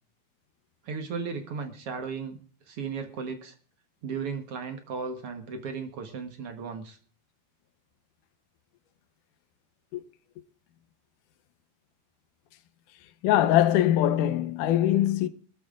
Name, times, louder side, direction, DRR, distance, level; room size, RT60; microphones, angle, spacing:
voice 1, 0.8-2.4 2.7-3.5 4.0-7.0, right 5 dB, 70° right, 1.4 m, -35 dB
voice 2, 13.2-15.3, left 12 dB, 70° left, 2.1 m, -22 dB
23.5 x 13.5 x 2.5 m
omnidirectional pair, 4.5 m